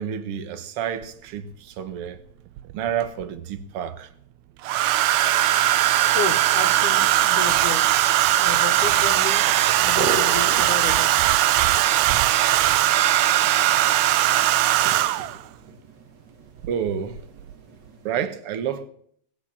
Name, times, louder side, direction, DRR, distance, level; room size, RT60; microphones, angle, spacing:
voice 1, 0.0-2.2 2.7-4.1 16.7-17.2 18.0-18.9, right 8 dB, 55° right, 1.9 m, -29 dB
Domestic sounds home sounds, 1.0-1.1 2.6-3.2 4.6-15.4 16.6-16.9 17.2-17.5, right 13 dB, 75° right, 1.9 m, -19 dB
sound 1, 5.3-18.1, right 2 dB, 40° right, 2.0 m, -40 dB
voice 2, 6.1-7.9 8.4-9.5 9.8-11.1, left 7 dB, 90° left, 2.7 m, -32 dB
20.0 x 8.7 x 7.4 m
omnidirectional pair, 3.4 m